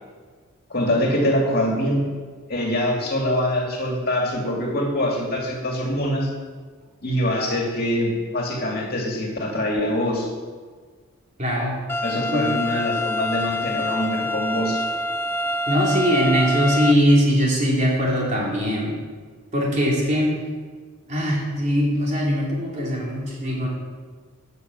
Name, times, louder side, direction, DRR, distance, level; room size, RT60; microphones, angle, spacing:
voice 1, 0.7-2.1 2.5-6.3 7.0-10.3 12.0-14.8, left 1 dB, 45° left, -1 dB, 2.4 m, -24 dB
voice 2, 11.4-11.8 12.3-12.5 15.7-18.9 19.5-20.3 21.1-23.7, equal, 35° right, -4 dB, 3.4 m, -21 dB
sound 1, 11.9-16.9, left 1 dB, 10° left, 0.3 m, -26 dB
11.5 x 7.0 x 8.1 m, 1.5 s
head